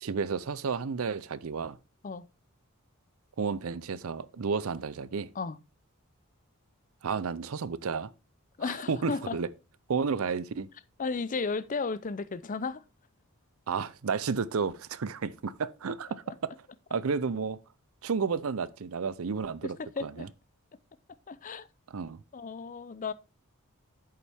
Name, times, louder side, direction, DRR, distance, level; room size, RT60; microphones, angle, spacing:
voice 1, 0.0-1.8 3.4-5.3 7.0-8.1 8.6-9.5 9.9-10.7 13.7-16.5 16.9-17.6 18.0-20.3 21.9-22.2, right 5 dB, 70° right, 0.5 m, -32 dB
voice 2, 8.6-9.4 11.0-12.8 19.6-20.3 21.3-21.7 22.3-23.1, left 4 dB, 35° left, 0.5 m, -34 dB
8.6 x 7.2 x 3.4 m
head